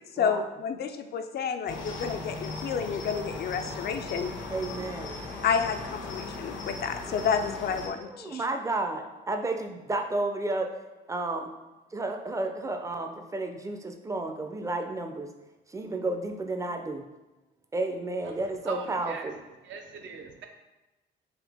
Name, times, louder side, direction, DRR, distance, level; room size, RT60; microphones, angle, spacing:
voice 1, 0.1-4.3 5.4-8.5, left 6 dB, 55° left, 8 dB, 0.4 m, -30 dB
Cricket, 1.7-7.9, left 3 dB, 75° left, 0.7 m, -38 dB
voice 2, 4.5-5.2 8.0-10.7 11.1-11.5 11.9-15.3 15.7-17.0 17.7-19.4, right 2 dB, 15° right, 5 dB, 0.4 m, -32 dB
voice 3, 18.6-19.3 19.6-20.5, right 5 dB, 70° right, 3 dB, 0.6 m, -41 dB
4.0 x 2.8 x 3.4 m, 1.1 s
cardioid pair, 90°, 20 cm